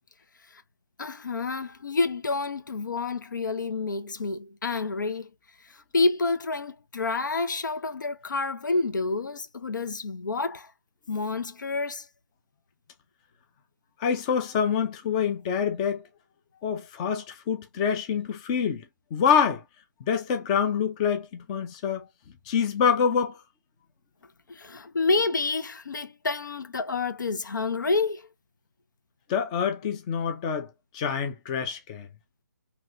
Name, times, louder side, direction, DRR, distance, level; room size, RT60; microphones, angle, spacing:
voice 1, 1.0-5.3 5.9-10.7 11.1-12.1 24.5-28.3, left 3 dB, 90° left, 0.5 m, -28 dB
voice 2, 14.0-16.0 16.6-19.6 20.0-22.1 22.5-23.4 29.3-32.1, left 7 dB, 20° left, 0.5 m, -26 dB
3.1 x 2.8 x 2.5 m
hypercardioid pair, 155°, 10 cm